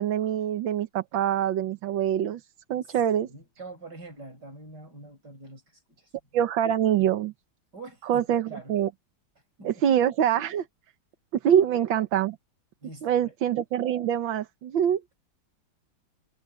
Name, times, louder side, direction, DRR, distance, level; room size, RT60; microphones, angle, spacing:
voice 1, 0.0-2.4 2.7-3.3 6.3-7.3 8.1-8.9 9.6-10.7 11.4-12.4 13.0-15.0, right 10 dB, 70° right, 1.7 m, -24 dB
voice 2, 2.9-6.1 7.7-8.7 9.6-9.8 12.8-13.3, right 2 dB, 50° right, 8.3 m, -45 dB
omnidirectional pair, 2.3 m